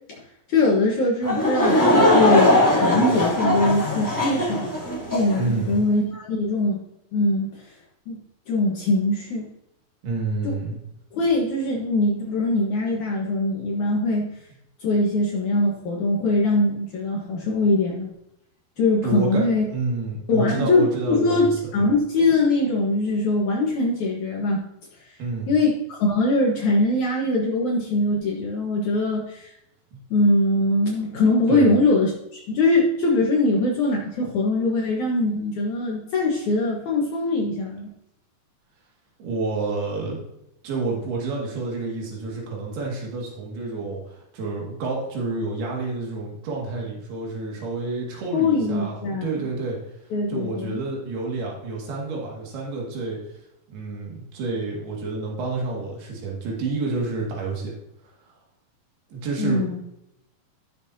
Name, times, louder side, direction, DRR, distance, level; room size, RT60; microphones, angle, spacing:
voice 1, 0.5-4.6 5.1-6.8 7.1-7.6 8.1-8.2 8.5-9.5 10.4-10.6 11.1-14.4 14.8-18.1 18.8-19.7 20.3-24.6 25.5-29.5 30.1-37.9 48.3-49.5 50.1-50.8 59.4-59.8, left 2 dB, 60° left, -3 dB, 2.3 m, -22 dB
Laughter / Crowd, 1.2-5.4, left 1 dB, 5° left, 2.1 m, -20 dB
voice 2, 5.4-5.8 10.0-10.8 19.0-19.4 19.7-21.9 25.2-25.5 29.9-30.0 31.5-31.7 39.2-40.2 40.6-49.8 50.3-53.2 53.7-57.7 59.1-59.8, right 3 dB, 80° right, -2 dB, 4.0 m, -29 dB
15.0 x 7.0 x 2.7 m, 0.82 s
omnidirectional pair, 4.5 m